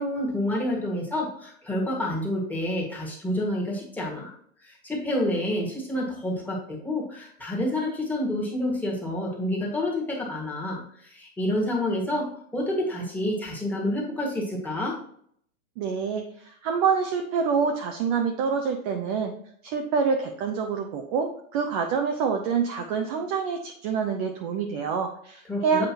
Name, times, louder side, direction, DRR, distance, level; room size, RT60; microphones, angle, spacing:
voice 1, 0.0-4.3 4.6-12.3 12.5-14.9 25.5-25.9, left 1 dB, 5° left, -3 dB, 1.7 m, -28 dB
voice 2, 15.8-19.3 19.6-25.9, right 6 dB, 30° right, 3 dB, 0.6 m, -26 dB
8.1 x 4.9 x 2.9 m, 0.64 s
hypercardioid pair, 135°, 42 cm